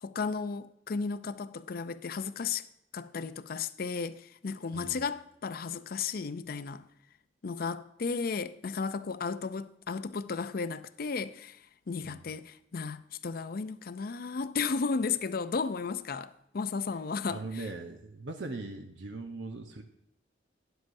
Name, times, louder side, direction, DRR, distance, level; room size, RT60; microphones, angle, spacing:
voice 1, 0.0-2.7 2.9-6.8 7.4-17.7, left 5 dB, 55° left, 0.5 m, -34 dB
voice 2, 17.3-19.8, right 3 dB, 75° right, 0.9 m, -40 dB
12.5 x 10.0 x 2.7 m
head